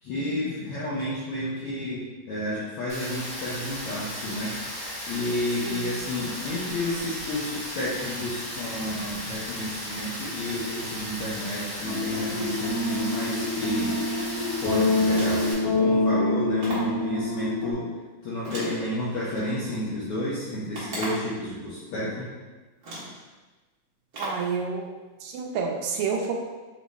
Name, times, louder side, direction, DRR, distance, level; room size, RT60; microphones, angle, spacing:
voice 1, 0.0-4.6 5.1-14.0 14.6-17.9 18.2-22.3, left 1 dB, 80° left, -7 dB, 1.3 m, -31 dB
Rain, 2.9-15.5, equal, 55° left, 0.8 m, -36 dB
sound 1, 11.8-17.7, left 2 dB, 35° left, 0.4 m, -26 dB
sound 2, 15.0-15.6 16.6-17.0 18.4-19.4 20.7-21.4 22.3-22.4 22.8-23.2 24.1-24.5, right 1 dB, 60° right, 1.0 m, -36 dB
voice 2, 24.2-24.9 25.2-26.3, right 5 dB, 80° right, 1 dB, 1.8 m, -29 dB
6.0 x 2.0 x 3.4 m, 1.3 s
omnidirectional pair, 3.3 m